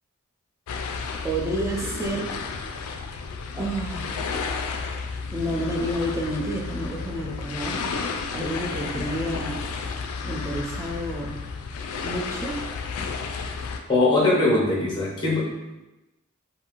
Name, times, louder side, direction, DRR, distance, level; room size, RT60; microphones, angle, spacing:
sound 1, 0.7-13.8, left 5 dB, 80° left, 0.3 m, -32 dB
voice 1, 1.2-2.3 3.6-4.1 5.3-7.8 8.3-9.6 10.2-11.4 12.0-12.6, right 1 dB, 15° right, 0 dB, 0.3 m, -29 dB
voice 2, 13.9-15.6, left 2 dB, 20° left, -5 dB, 0.7 m, -21 dB
2.6 x 2.4 x 2.9 m, 1.0 s
head